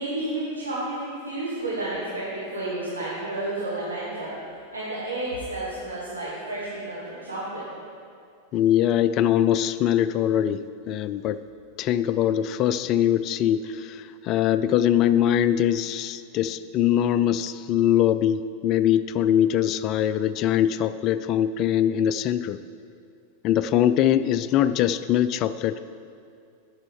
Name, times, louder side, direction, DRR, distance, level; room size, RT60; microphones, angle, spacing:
voice 1, 0.0-4.3 4.7-7.6, right 2 dB, 80° right, -9 dB, 2.2 m, -31 dB
voice 2, 8.5-11.4 11.8-22.6 23.4-25.8, left 10 dB, 35° left, 13 dB, 0.3 m, -22 dB
12.0 x 7.1 x 4.8 m, 2.3 s
figure-of-eight pair, 90°, 0 cm